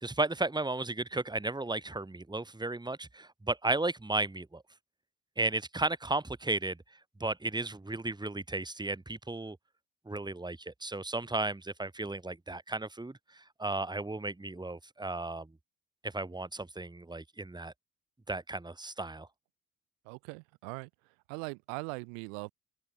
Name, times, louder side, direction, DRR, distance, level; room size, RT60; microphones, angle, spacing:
voice 1, 0.0-4.6 5.4-6.8 7.2-9.6 10.1-15.5 16.0-17.7 18.3-19.3, right 2 dB, 10° right, 2.4 m, -34 dB
voice 2, 20.0-20.9 21.3-22.5, right 40 dB or more, 70° right, 2.6 m, -40 dB
open air
figure-of-eight pair, 50°, 39 cm